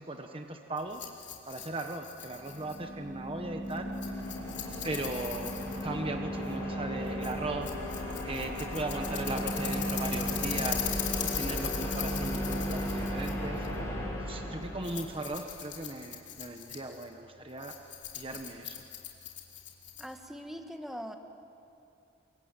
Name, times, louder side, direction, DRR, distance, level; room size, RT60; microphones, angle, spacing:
voice 1, 0.0-3.9 4.8-5.5 5.8-7.7 8.2-10.8 11.2-13.7 14.3-17.7 18.1-18.9, right 2 dB, 30° right, 4 dB, 1.3 m, -38 dB
Rattle, 0.8-20.3, left 10 dB, 65° left, 3.6 m, -40 dB
sound 1, 2.3-15.3, equal, 15° left, 6.9 m, -35 dB
voice 2, 20.0-21.1, equal, ahead, 5 dB, 1.5 m, -41 dB
26.5 x 23.0 x 9.1 m, 2.6 s
head